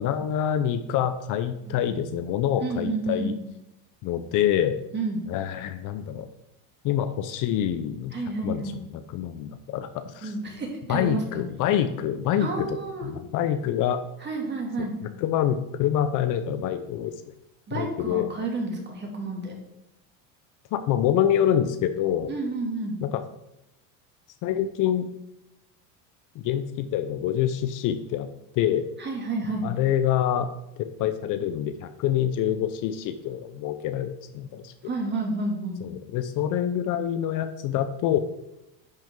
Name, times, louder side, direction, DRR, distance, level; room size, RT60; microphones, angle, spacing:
voice 1, 0.0-3.4 4.0-4.8 5.3-6.3 6.8-8.1 8.4-8.6 9.1-10.3 10.9-14.0 14.8-17.1 17.7-18.3 20.7-22.3 23.0-23.2 24.4-25.1 26.4-28.3 28.6-28.9 29.6-30.5 30.8-34.7 35.8-38.2, left 10 dB, 50° left, 10 dB, 0.7 m, -26 dB
voice 2, 2.6-3.3 4.9-5.2 8.1-8.8 10.2-11.4 12.4-13.1 14.2-15.0 17.7-19.5 22.3-22.9 29.0-29.7 34.8-35.8, right 2 dB, 25° right, 0 dB, 2.6 m, -30 dB
10.5 x 6.0 x 3.8 m, 0.86 s
supercardioid pair, 120°, 40 cm